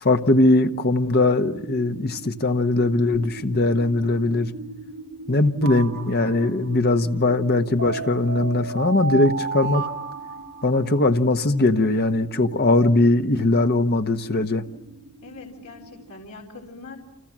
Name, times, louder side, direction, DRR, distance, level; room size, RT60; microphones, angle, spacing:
voice 1, 0.0-4.5 5.3-9.8 10.6-14.6, left 2 dB, 45° left, 1.3 m, -20 dB
sound 1, 1.1-16.1, right 3 dB, 85° right, 1.8 m, -42 dB
sound 2, 5.6-6.7 7.8-11.0, right 4 dB, 70° right, 2.9 m, -31 dB
voice 2, 15.2-17.0, left 3 dB, 65° left, 4.0 m, -42 dB
30.0 x 26.5 x 7.5 m
head